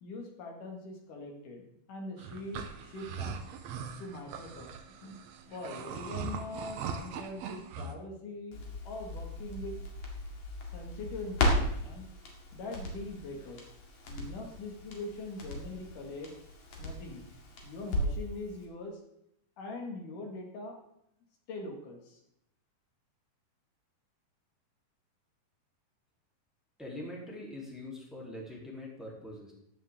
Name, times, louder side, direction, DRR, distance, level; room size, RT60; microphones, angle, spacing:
voice 1, 0.0-3.4 4.0-4.7 5.0-8.6 8.9-9.8 10.7-12.1 12.5-13.7 14.1-16.3 16.8-17.2 17.6-19.0 19.6-20.8 21.5-22.2, left 2 dB, 65° left, 1 dB, 3.5 m, -42 dB
sound 1, 2.2-7.9, right 6 dB, 75° right, 1.6 m, -40 dB
Crackle, 8.5-18.3 18.6-18.7, left 1 dB, 50° left, 2.9 m, -36 dB
voice 2, 26.8-29.5, left 1 dB, ahead, -4 dB, 2.8 m, -43 dB
14.5 x 9.9 x 3.7 m, 0.76 s
omnidirectional pair, 4.1 m